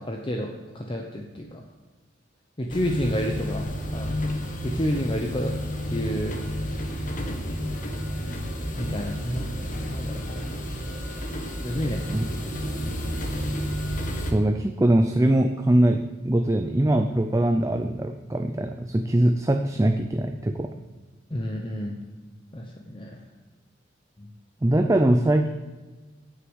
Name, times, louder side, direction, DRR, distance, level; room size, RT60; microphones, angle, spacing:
voice 1, 0.0-1.6 2.6-3.7 3.9-4.2 4.6-5.5 5.9-6.4 8.8-10.4 11.6-12.1 21.3-22.0 22.5-23.2 24.2-24.3, equal, 25° left, 1 dB, 0.8 m, -30 dB
sound 1, 2.7-14.3, equal, 40° left, 1.3 m, -31 dB
voice 2, 14.3-20.7 24.6-25.5, right 1 dB, 15° right, 5 dB, 0.4 m, -22 dB
9.4 x 6.2 x 7.9 m, 1.3 s
head